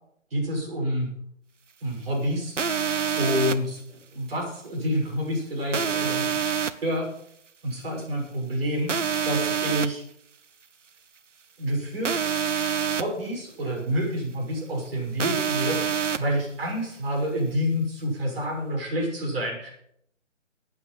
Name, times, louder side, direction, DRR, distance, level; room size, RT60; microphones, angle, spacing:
voice 1, 0.3-1.1 1.8-2.6 3.2-6.3 6.8-7.1 7.6-9.0 9.3-10.0 11.6-12.2 12.9-19.7, equal, 50° right, -1 dB, 6.3 m, -28 dB
sound 1, 2.6-3.6 5.7-6.7 8.9-9.9 12.0-13.0 15.2-16.2, right 7 dB, 75° right, 1.1 m, -26 dB
16.0 x 8.9 x 5.7 m, 0.70 s
figure-of-eight pair, 155°, 37 cm